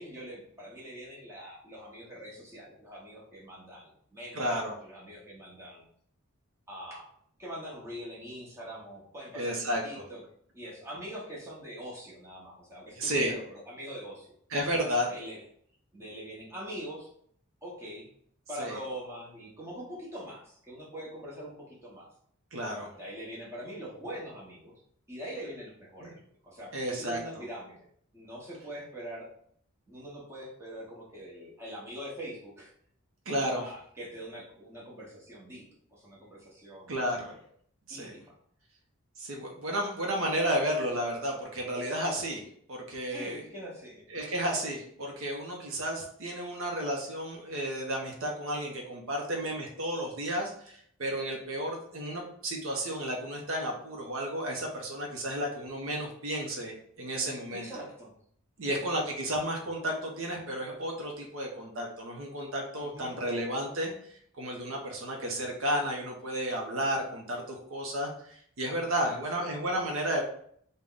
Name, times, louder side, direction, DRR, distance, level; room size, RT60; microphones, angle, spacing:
voice 1, 0.0-5.8 6.7-7.1 7.4-10.2 10.5-14.3 15.1-15.4 15.9-17.1 17.6-18.1 18.5-22.1 22.9-24.7 25.1-27.9 28.1-29.3 29.9-32.7 33.5-37.4 37.9-38.3 43.1-44.1 57.5-58.1 58.6-58.9 62.7-63.1 69.0-69.2, equal, 10° right, -6 dB, 1.0 m, -43 dB
voice 2, 4.3-4.7 9.3-10.0 13.0-13.3 14.5-15.1 18.6-18.8 22.5-22.9 26.0-26.1 26.7-27.4 33.3-33.7 36.9-37.3 37.9-38.1 39.2-43.4 44.1-57.7 58.6-70.2, equal, 60° right, 0 dB, 0.6 m, -32 dB
3.4 x 2.1 x 3.8 m, 0.63 s
head